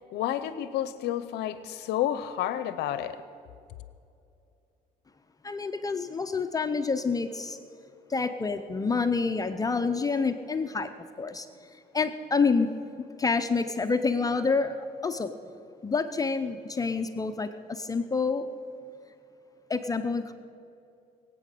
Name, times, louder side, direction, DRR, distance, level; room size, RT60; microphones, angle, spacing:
voice 1, 0.1-3.2, left 11 dB, 80° left, 14 dB, 0.6 m, -30 dB
voice 2, 5.4-7.6 8.1-10.9 11.2-11.5 11.7-12.7 13.2-15.3 15.8-18.5 19.7-20.3, left 4 dB, 20° left, 8 dB, 0.6 m, -28 dB
21.0 x 8.5 x 6.7 m, 2.6 s
cardioid pair, 110°, 17 cm